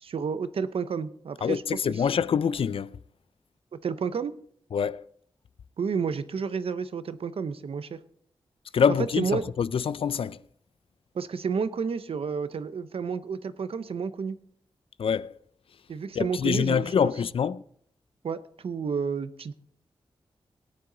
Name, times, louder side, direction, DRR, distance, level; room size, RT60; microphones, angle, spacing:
voice 1, 0.0-2.0 3.7-4.3 5.8-8.0 9.2-9.4 11.1-14.4 15.9-16.9 18.2-19.5, right 6 dB, 75° right, 0.7 m, -31 dB
voice 2, 1.4-3.0 4.7-5.1 8.7-10.4 15.0-15.3 16.1-17.6, left 7 dB, 70° left, 0.4 m, -25 dB
18.5 x 10.0 x 3.9 m
wide cardioid pair, 155°, 10 cm